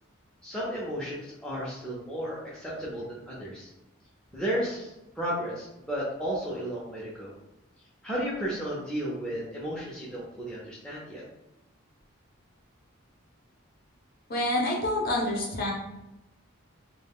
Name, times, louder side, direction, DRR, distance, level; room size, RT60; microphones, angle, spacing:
voice 1, 0.4-3.7 4.3-7.3 8.0-11.2, equal, 5° left, -7 dB, 0.4 m, -33 dB
voice 2, 14.3-15.7, left 1 dB, 45° left, -2 dB, 0.7 m, -27 dB
2.2 x 2.1 x 3.4 m, 0.93 s
head